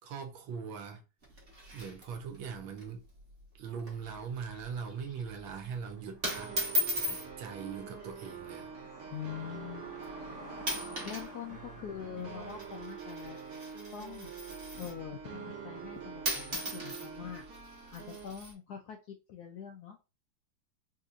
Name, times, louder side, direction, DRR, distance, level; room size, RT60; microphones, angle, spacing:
voice 1, 0.0-1.0 1.7-3.1 3.5-6.6 6.9-8.7, right 6 dB, 75° right, 1.5 m, -41 dB
sound 1, 1.2-2.5 2.8-2.9 3.2-3.4 3.8-4.1 4.5-4.7 5.5-5.7 6.2-7.3 8.3-8.6 9.2-9.3 10.0-10.3 10.6-11.3 11.5-15.1 15.9-16.0 16.2-18.5, equal, 35° right, 1.2 m, -37 dB
sound 2, 3.9-13.5, equal, 10° left, 1.0 m, -53 dB
sound 3, 6.2-18.3, right 6 dB, 60° right, 1.2 m, -45 dB
voice 2, 9.1-9.9 11.0-13.4 13.9-14.3 14.8-17.5 17.9-20.1, left 8 dB, 75° left, 0.9 m, -44 dB
4.2 x 2.8 x 2.4 m
omnidirectional pair, 2.2 m